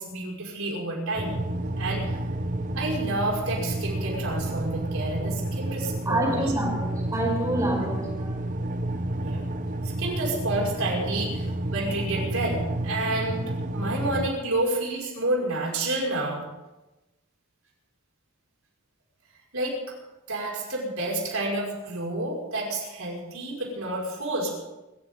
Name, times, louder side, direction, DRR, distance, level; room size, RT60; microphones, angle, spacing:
voice 1, 0.0-1.4 1.8-2.2 2.8-6.5 9.2-9.4 9.8-11.5 11.7-13.5 13.7-16.4 19.5-19.9 20.3-24.5, right 2 dB, 80° right, -2 dB, 5.9 m, -29 dB
sound 1, 1.1-14.3, right 1 dB, 35° right, 1.0 m, -30 dB
voice 2, 6.1-8.4, right 1 dB, 15° right, -1 dB, 5.1 m, -27 dB
25.5 x 14.5 x 3.9 m, 1.0 s
head